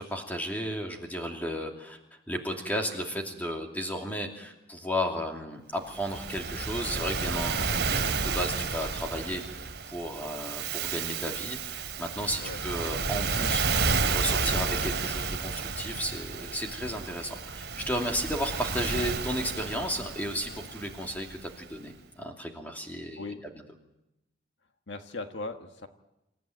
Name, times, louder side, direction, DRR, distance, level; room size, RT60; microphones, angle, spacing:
voice 1, 0.0-2.0 2.3-23.2, equal, 10° left, 2 dB, 2.7 m, -34 dB
Waves surf, 6.0-21.5, right 4 dB, 65° right, 3.0 m, -31 dB
voice 2, 24.9-25.9, left 3 dB, 80° left, 6 dB, 1.6 m, -38 dB
27.0 x 15.0 x 9.2 m, 0.93 s
head